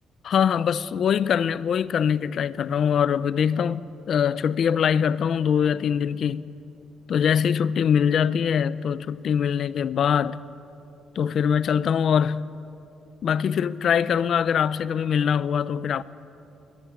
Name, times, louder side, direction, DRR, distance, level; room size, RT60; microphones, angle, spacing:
voice 1, 0.2-6.5 7.1-10.4 11.1-12.4 13.2-16.0, left 7 dB, 50° left, 0.6 m, -23 dB
21.5 x 20.5 x 8.4 m
cardioid pair, 140°, 0 cm